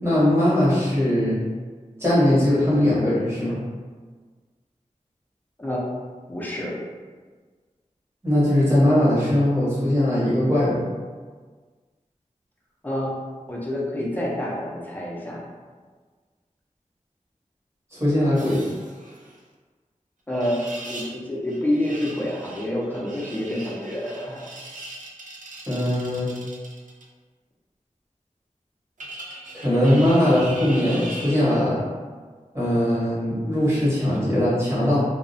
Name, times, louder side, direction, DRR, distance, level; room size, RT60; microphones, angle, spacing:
voice 1, 0.0-1.4 2.0-3.6 8.2-10.8 17.9-18.6 25.7-26.3 29.5-31.8 32.5-35.0, left 1 dB, 20° right, -9 dB, 1.0 m, -20 dB
voice 2, 6.3-6.7 12.8-13.1 13.5-15.4 20.3-20.6 20.9-24.4, left 1 dB, 15° left, -5 dB, 0.5 m, -28 dB
sound 1, 18.3-19.4 20.3-21.2 21.5-27.0 29.0-31.6 34.0-34.2, right 1 dB, 75° right, 0.4 m, -40 dB
2.3 x 2.0 x 2.6 m, 1.5 s
wide cardioid pair, 75°, 14 cm